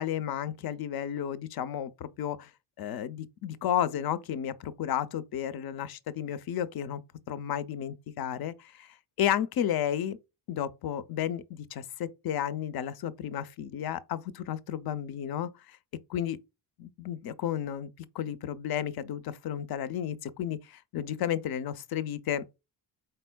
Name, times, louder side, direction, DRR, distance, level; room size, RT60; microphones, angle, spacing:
voice 1, 0.0-2.5 2.8-7.0 7.3-10.2 10.5-15.8 16.1-16.4 16.8-22.4, left 10 dB, 55° left, 0.6 m, -32 dB
4.4 x 4.0 x 2.2 m
cardioid pair, 105°, 45 cm